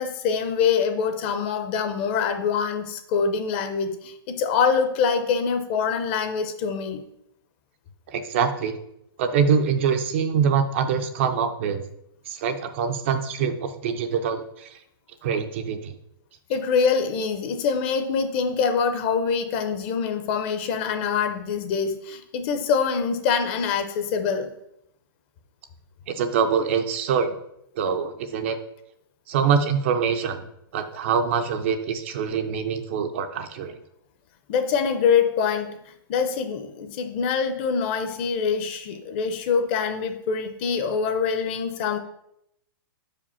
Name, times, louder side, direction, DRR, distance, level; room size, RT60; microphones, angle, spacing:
voice 1, 0.0-7.0 16.5-24.5 34.5-35.7 36.1-42.0, left 6 dB, 30° left, 8 dB, 0.6 m, -24 dB
voice 2, 8.1-8.8 9.2-11.8 12.3-14.8 15.2-15.9 26.1-27.4 27.8-28.6 29.3-30.4 30.7-33.8, right 6 dB, 35° right, 8 dB, 0.4 m, -24 dB
5.1 x 5.0 x 5.6 m, 0.78 s
hypercardioid pair, 170°, 12 cm